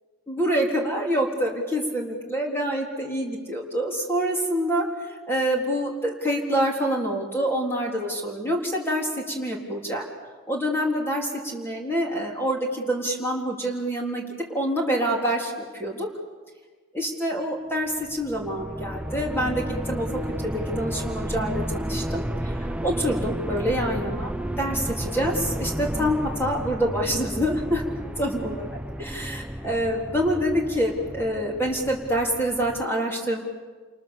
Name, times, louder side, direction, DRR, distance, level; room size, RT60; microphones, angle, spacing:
voice 1, 0.3-4.9 5.3-10.0 10.5-14.2 14.5-15.5 15.8-16.1 16.9-20.1 20.4-24.3 24.6-27.8 28.2-33.4, equal, 10° left, -1 dB, 3.5 m, -26 dB
sound 1, 17.9-32.9, equal, 5° right, 0.7 m, -32 dB
28.5 x 28.0 x 7.3 m, 1.4 s
head